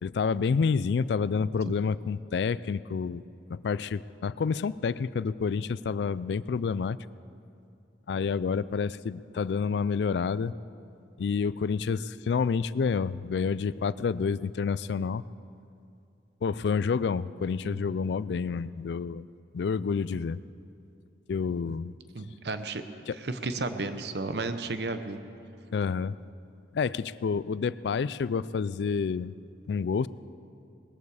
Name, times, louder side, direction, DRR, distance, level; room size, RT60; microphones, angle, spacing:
voice 1, 0.0-3.2 3.5-7.0 8.1-10.5 11.2-15.2 16.4-19.3 19.5-20.4 21.3-21.9 23.1-23.2 25.7-26.1 26.7-29.3 29.7-30.1, left 5 dB, 70° left, 18 dB, 0.3 m, -29 dB
voice 2, 22.1-22.8 23.1-25.2, right 3 dB, 70° right, 9 dB, 0.8 m, -33 dB
19.5 x 14.0 x 4.9 m, 2.6 s
head